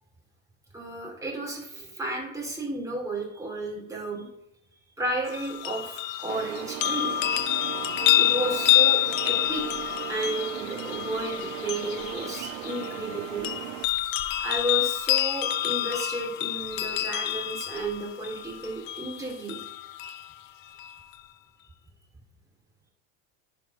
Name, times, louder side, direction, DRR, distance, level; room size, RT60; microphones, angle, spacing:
voice 1, 0.7-4.3 5.0-7.1 8.2-9.7 10.1-13.5 14.4-19.6, right 2 dB, 10° right, -2 dB, 2.8 m, -33 dB
sound 1, 5.3-20.3 20.8-20.9, left 14 dB, 60° left, 0.8 m, -28 dB
sound 2, 5.3-12.5, right 4 dB, 25° right, 2.9 m, -51 dB
sound 3, 6.3-13.9, right 19 dB, 85° right, 0.5 m, -38 dB
10.5 x 4.3 x 5.5 m, 0.80 s
cardioid pair, 155°, 41 cm